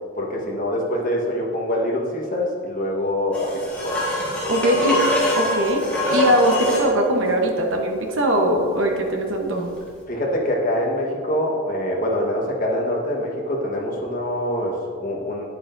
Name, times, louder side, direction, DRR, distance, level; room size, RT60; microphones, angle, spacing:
voice 1, 0.2-4.0 10.1-15.4, left 1 dB, 40° left, -2 dB, 1.2 m, -24 dB
sound 1, 3.3-6.9 9.8-9.9, left 1 dB, 5° left, 1.4 m, -23 dB
voice 2, 4.5-5.0 5.3-9.7, equal, 55° right, 2 dB, 1.0 m, -21 dB
9.5 x 8.2 x 2.6 m, 2.1 s
head